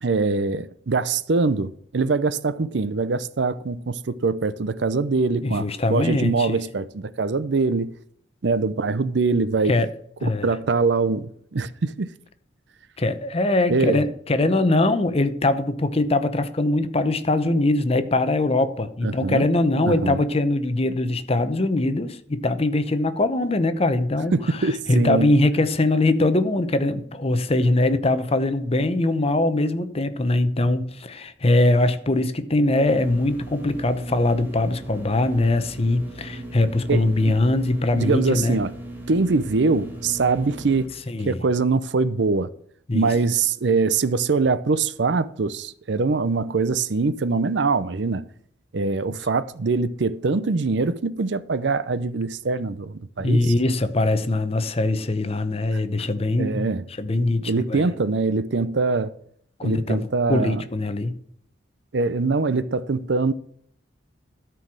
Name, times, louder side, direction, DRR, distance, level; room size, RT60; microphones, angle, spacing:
voice 1, 0.0-7.9 8.4-9.8 10.2-12.1 13.7-14.0 19.0-19.4 19.9-20.2 24.3-25.3 36.9-37.0 37.9-38.7 39.1-40.9 41.3-42.5 42.9-48.3 48.7-53.5 55.7-55.8 56.4-56.8 57.4-59.1 59.6-60.6 61.9-63.3, right 4 dB, 65° right, 0.6 m, -23 dB
voice 2, 5.4-6.6 9.7-9.9 10.2-10.5 13.0-38.6 41.1-41.4 42.9-43.1 53.2-56.7 57.0-57.9 59.6-61.2, left 2 dB, 35° left, 0.8 m, -22 dB
sound 1, 32.9-40.9, right 1 dB, 10° right, 2.1 m, -38 dB
13.0 x 4.6 x 6.2 m
head